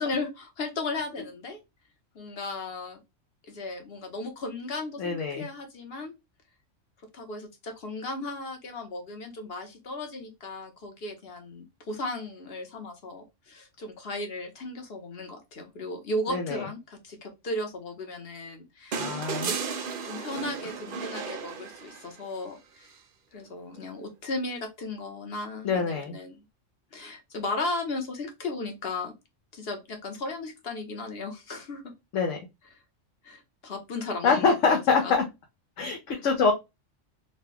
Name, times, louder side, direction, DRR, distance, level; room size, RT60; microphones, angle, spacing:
voice 1, 0.0-1.6 2.1-3.0 3.4-6.1 7.1-22.9 23.3-26.4 26.9-29.1 29.5-31.9 33.2-35.1 36.1-36.2, left 2 dB, 55° left, 5 dB, 1.2 m, -36 dB
voice 2, 5.0-5.4 16.3-16.6 19.0-19.5 25.6-26.2 32.1-32.4 34.2-35.2 35.8-36.5, left 5 dB, 75° left, 3 dB, 1.1 m, -25 dB
sound 1, 18.9-22.3 23.8-23.9, right 5 dB, 55° right, 0.7 m, -34 dB
4.0 x 2.2 x 3.4 m, 0.23 s
omnidirectional pair, 1.3 m